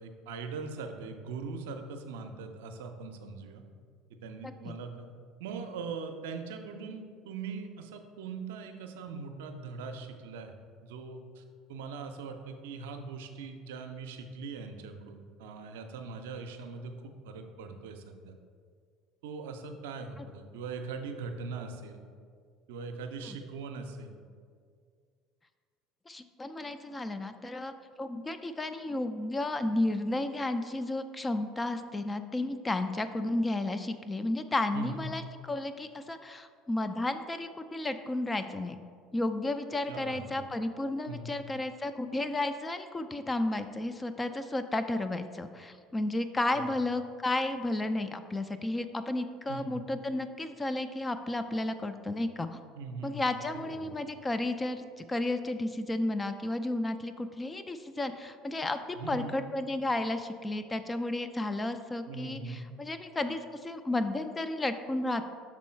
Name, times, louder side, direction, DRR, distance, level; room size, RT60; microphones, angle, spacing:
voice 1, 0.0-3.6 4.2-5.1 5.4-10.5 10.8-11.4 11.7-18.4 19.2-22.1 22.7-24.2 34.7-35.0 39.9-40.4 41.1-41.3 46.5-46.7 49.5-49.8 52.8-54.0 59.0-59.4 62.1-62.7, right 4 dB, 80° right, 6 dB, 0.5 m, -41 dB
voice 2, 26.1-27.7 28.0-38.8 39.1-52.6 53.0-65.4, left 2 dB, 20° left, 9 dB, 0.3 m, -32 dB
6.2 x 3.7 x 4.3 m, 2.1 s
hypercardioid pair, 85°, 0 cm